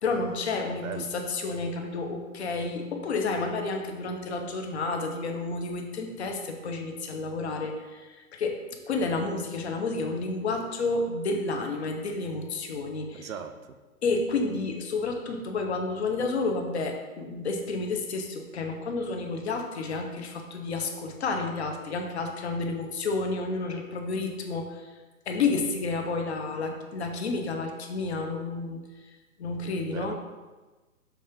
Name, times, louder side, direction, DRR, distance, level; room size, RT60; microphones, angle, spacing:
voice 1, 0.0-8.6 8.9-13.3 14.0-24.9 25.3-29.1 29.4-30.2, left 3 dB, 50° left, 4 dB, 0.9 m, -30 dB
voice 2, 0.8-1.1 13.1-13.8 29.9-30.2, right 7 dB, 70° right, 8 dB, 0.7 m, -38 dB
6.3 x 3.4 x 5.0 m, 1.2 s
hypercardioid pair, 160°, 43 cm